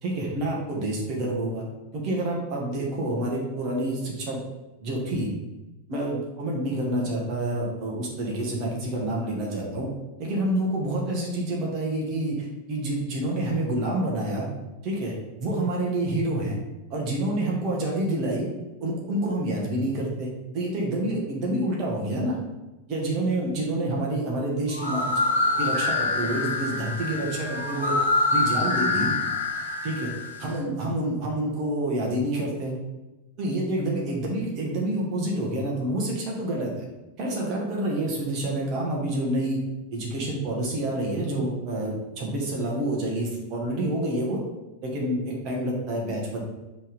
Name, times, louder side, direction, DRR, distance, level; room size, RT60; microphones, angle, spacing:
voice 1, 0.0-1.6 1.9-4.4 4.8-5.3 5.9-9.9 10.2-14.5 14.8-15.1 15.4-16.6 16.9-18.4 18.8-20.3 20.5-22.4 22.9-25.2 25.6-27.9 28.3-29.1 29.8-30.1 30.4-32.7 33.4-36.9 37.2-39.6 39.9-44.4 44.8-46.4, right 1 dB, 40° right, -2 dB, 1.5 m, -28 dB
sound 1, 24.7-30.5, left 2 dB, 75° left, 1.4 m, -26 dB
5.3 x 3.5 x 5.2 m, 1.0 s
figure-of-eight pair, 90°, 0 cm